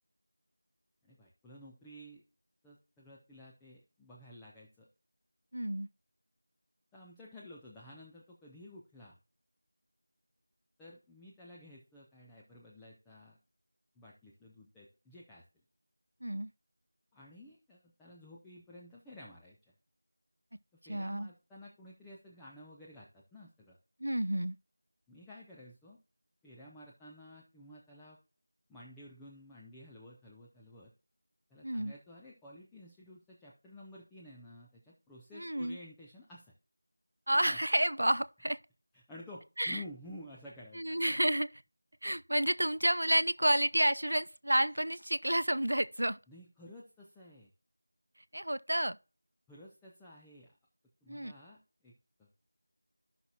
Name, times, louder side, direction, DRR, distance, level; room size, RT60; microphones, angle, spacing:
voice 1, 1.0-2.2 2.6-4.9 6.9-9.2 10.8-13.4 14.0-15.4 17.1-19.7 20.7-23.8 25.1-26.0 26.4-28.2 28.7-30.9 31.5-36.5 37.5-37.6 38.9-40.8 46.3-47.5 49.5-50.5 51.0-52.3, left 1 dB, 5° left, 0.4 m, -52 dB
voice 2, 5.5-5.9 16.2-16.5 20.9-21.3 24.0-24.6 31.6-31.9 35.3-35.8 37.3-38.6 39.6-39.8 40.8-41.6 42.0-46.2 48.3-49.0 51.1-51.3, right 1 dB, 80° right, 0.5 m, -30 dB
13.0 x 5.9 x 2.9 m
figure-of-eight pair, 175°, 0 cm